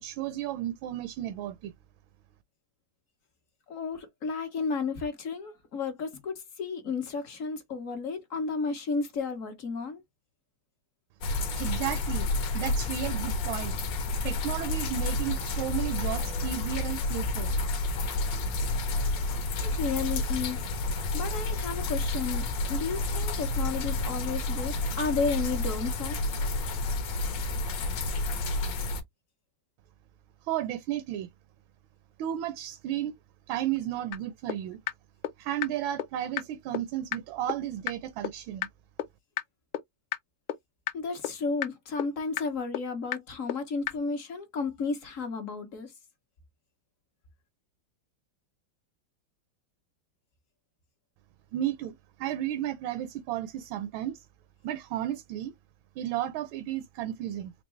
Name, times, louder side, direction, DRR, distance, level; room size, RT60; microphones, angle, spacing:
voice 1, 0.0-1.7 11.5-12.3 12.5-13.8 14.2-17.6 30.4-31.3 32.2-33.1 33.5-34.8 35.4-38.7 51.5-54.3 54.6-55.5 56.0-57.5, right 12 dB, 80° right, 1.3 m, -33 dB
voice 2, 3.7-10.0 19.6-20.7 21.1-26.2 40.9-45.9, left 4 dB, 50° left, 1.1 m, -33 dB
sound 1, 11.2-29.0, left 2 dB, 65° left, 1.6 m, -30 dB
sound 2, 34.1-34.2 34.5-34.6 34.9-35.0 35.2-35.3 35.6-35.7 36.0-36.1 36.4-36.5 36.7-36.8 37.1-37.2 37.5-37.6 37.9-38.0 38.2-38.3 38.6-38.7 39.0-39.1 39.4-39.5 39.7-39.8 40.1-40.2 40.5-40.6 40.9-41.0 41.2-41.3 41.6-41.7 42.0-42.1 42.4-42.5 42.7-42.8 43.1-43.2 43.5-43.6 43.9-44.0, left 13 dB, 90° left, 1.5 m, -30 dB
4.5 x 2.5 x 3.1 m
omnidirectional pair, 2.2 m